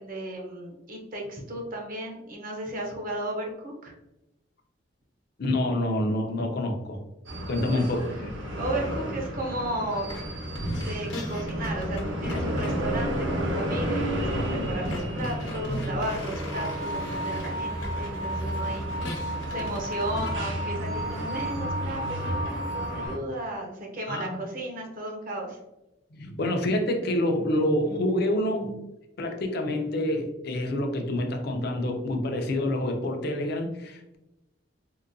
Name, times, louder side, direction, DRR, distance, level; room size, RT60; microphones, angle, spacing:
voice 1, 0.0-3.9 7.6-7.8 8.6-10.1 10.8-19.0 19.5-25.6, right 1 dB, 45° right, 1 dB, 0.6 m, -34 dB
voice 2, 5.4-7.0 7.5-8.3 24.1-24.4 26.1-28.8 29.2-34.2, left 1 dB, 55° left, 4 dB, 0.5 m, -27 dB
sound 1, 7.3-23.2, equal, 80° right, 0.8 m, -32 dB
sound 2, 10.1-10.3 10.5-20.4, equal, 85° left, 0.9 m, -36 dB
sound 3, 16.5-23.1, right 2 dB, 10° right, 0.5 m, -35 dB
3.8 x 2.2 x 2.5 m, 0.92 s
head